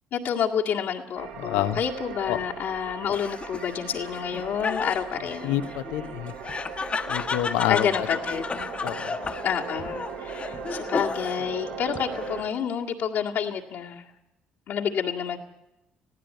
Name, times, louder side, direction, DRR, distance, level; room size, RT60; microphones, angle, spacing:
voice 1, 0.1-5.7 7.7-8.8 9.4-14.0 14.7-15.4, left 8 dB, 70° left, -1 dB, 2.0 m, -29 dB
sound 1, 1.1-12.4, right 6 dB, 90° right, 2.1 m, -39 dB
voice 2, 1.4-1.8 2.3-2.4 5.4-6.3 7.1-8.1 8.8-9.1, left 12 dB, 85° left, 10 dB, 1.1 m, -27 dB
Laughter, 3.1-11.5 11.9-12.6, left 4 dB, 35° left, 1.3 m, -33 dB
19.5 x 15.5 x 9.4 m, 0.94 s
supercardioid pair, 70°, 4 cm